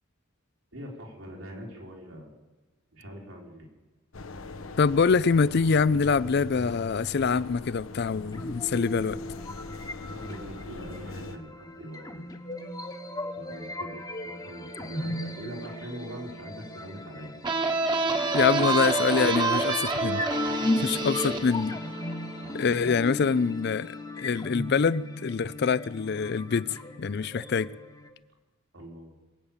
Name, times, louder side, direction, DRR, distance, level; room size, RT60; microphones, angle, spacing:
voice 1, 0.7-2.3 2.9-3.7 10.1-12.2 13.3-17.3 20.7-21.1 22.4-22.9 28.7-29.1, equal, 80° right, 4.0 m, -42 dB
sound 1, 4.1-11.4, left 2 dB, 80° left, 1.0 m, -41 dB
voice 2, 4.8-9.2 18.3-20.2 20.8-21.8 22.5-27.7, left 5 dB, 55° left, 0.4 m, -25 dB
sound 2, 8.1-28.1, left 1 dB, 20° left, 1.1 m, -36 dB
sound 3, 17.4-22.9, right 3 dB, 20° right, 1.2 m, -28 dB
22.0 x 8.5 x 7.3 m
head